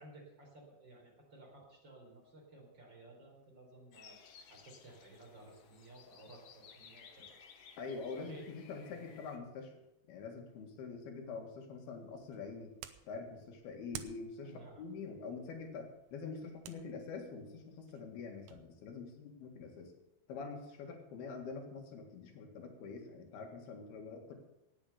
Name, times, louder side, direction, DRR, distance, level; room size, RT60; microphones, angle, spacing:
voice 1, 0.0-4.2 4.5-7.4 8.1-8.5 8.9-9.1 14.4-14.8, right 2 dB, 30° right, -1 dB, 4.3 m, -56 dB
sound 1, 3.9-9.4, left 6 dB, 60° left, 1.7 m, -58 dB
voice 2, 7.8-9.7 10.1-12.7 13.0-19.9 20.3-24.4, left 4 dB, 80° left, 3 dB, 3.9 m, -45 dB
sound 2, 11.9-18.7, right 11 dB, 85° right, 1.6 m, -54 dB
18.0 x 7.3 x 6.8 m, 0.90 s
omnidirectional pair, 4.4 m